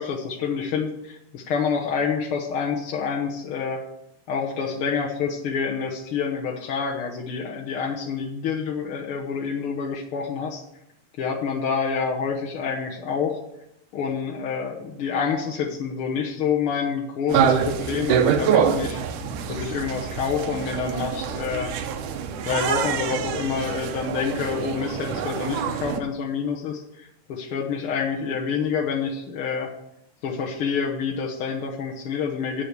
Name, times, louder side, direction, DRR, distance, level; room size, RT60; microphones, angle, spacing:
voice 1, 0.0-3.8 4.3-10.6 11.2-13.4 13.9-19.0 19.5-21.7 22.4-29.7 30.2-32.6, left 6 dB, 60° left, -1 dB, 1.5 m, -27 dB
sound 1, 17.3-26.0, right 7 dB, 80° right, 2.3 m, -25 dB
8.8 x 7.5 x 6.7 m, 0.80 s
omnidirectional pair, 3.6 m